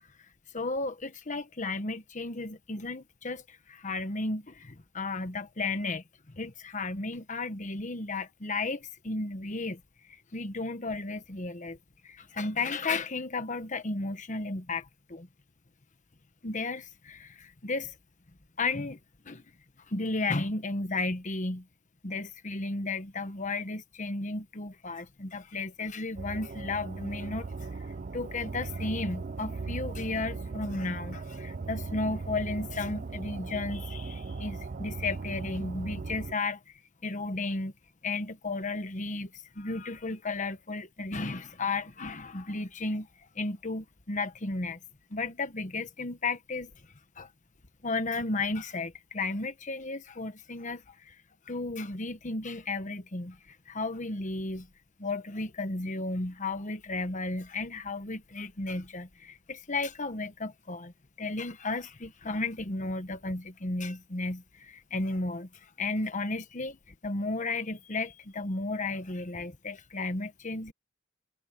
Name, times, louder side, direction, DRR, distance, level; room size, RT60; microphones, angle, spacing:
voice 1, 0.5-6.0 6.3-9.8 10.1-11.8 12.0-15.3 16.4-18.0 18.6-19.0 19.2-19.4 19.9-21.6 22.0-36.6 37.0-37.7 38.0-44.8 45.1-46.7 47.2-47.3 47.8-51.2 51.5-54.7 55.0-66.8 67.0-70.7, left 3 dB, 40° left, 1.2 m, -34 dB
sound 1, 26.2-36.3, right 4 dB, 45° right, 0.5 m, -38 dB
head